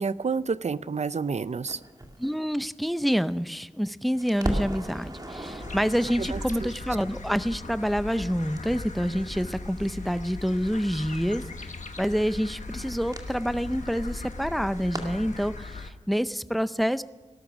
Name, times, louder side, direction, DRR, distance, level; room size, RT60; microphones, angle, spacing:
voice 1, 0.0-1.8 6.2-6.7, right 5 dB, 65° right, 16 dB, 0.5 m, -29 dB
Crackle, 1.7-3.8 4.1-15.5, right 1 dB, 30° right, 2.2 m, -39 dB
voice 2, 2.2-11.7 12.0-17.0, equal, ahead, 14 dB, 0.6 m, -27 dB
sound 1, 5.6-15.9, left 3 dB, 85° left, 1.2 m, -40 dB
18.0 x 12.5 x 6.1 m, 1.4 s
wide cardioid pair, 65°, 12 cm